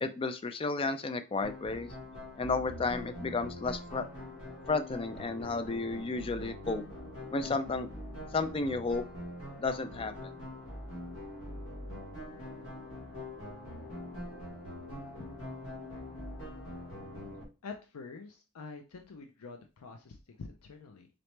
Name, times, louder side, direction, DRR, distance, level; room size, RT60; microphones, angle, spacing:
voice 1, 0.0-1.9 2.4-4.1 4.7-6.8 7.3-7.9 8.3-9.1 9.6-10.3, left 3 dB, 25° left, 10 dB, 0.3 m, -32 dB
sound 1, 1.4-17.4, left 1 dB, 65° left, 1.3 m, -43 dB
voice 2, 17.6-21.1, left 4 dB, 90° left, 5 dB, 0.5 m, -46 dB
3.9 x 3.1 x 3.2 m, 0.32 s
head